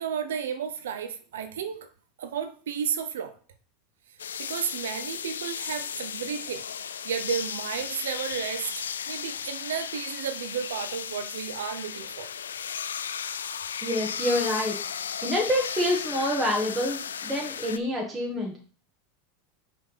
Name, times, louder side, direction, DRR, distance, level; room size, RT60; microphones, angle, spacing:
voice 1, 0.0-1.9 2.2-3.4 4.4-6.7 7.0-12.3, right 7 dB, 80° right, 9 dB, 0.7 m, -33 dB
sound 1, 4.2-17.8, left 8 dB, 85° left, 0.3 m, -35 dB
voice 2, 13.8-14.8 15.2-18.5, left 1 dB, 20° right, -2 dB, 1.8 m, -27 dB
6.1 x 3.7 x 5.7 m, 0.42 s
hypercardioid pair, 90°, 0 cm